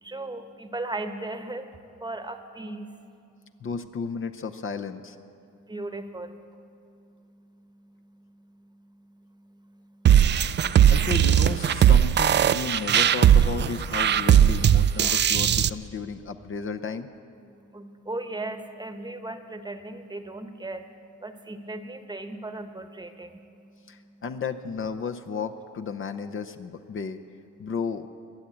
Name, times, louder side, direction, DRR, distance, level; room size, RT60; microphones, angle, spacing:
voice 1, 0.0-1.7 2.0-2.9 5.7-6.4 9.7-9.8 17.7-20.9 21.2-23.4, right 2 dB, 15° right, 8 dB, 1.1 m, -36 dB
voice 2, 3.6-5.2 10.5-10.6 10.9-17.1 23.9-27.2 27.6-28.1, left 5 dB, 45° left, 6 dB, 0.8 m, -33 dB
sound 1, 10.1-15.7, right 10 dB, 35° right, 0.4 m, -18 dB
22.0 x 7.6 x 8.5 m, 2.5 s
cardioid pair, 90°, 30 cm